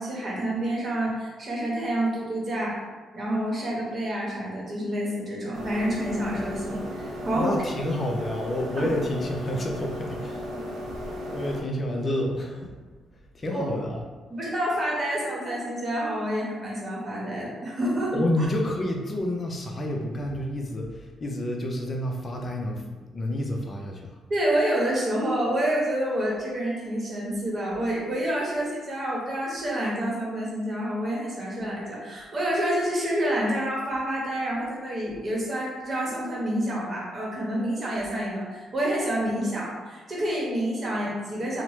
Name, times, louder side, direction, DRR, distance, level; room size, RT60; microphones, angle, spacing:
voice 1, 0.0-2.8 3.1-7.5 8.8-8.9 13.5-13.6 14.3-18.4 24.3-41.6, right 1 dB, 40° right, -4 dB, 1.0 m, -28 dB
sound 1, 5.5-11.6, equal, 80° right, 0.6 m, -35 dB
voice 2, 7.3-10.5 11.2-12.7 13.3-14.0 18.1-24.2, left 1 dB, 35° left, 1 dB, 0.5 m, -29 dB
2.9 x 2.1 x 3.1 m, 1.3 s
cardioid pair, 90°, 0 cm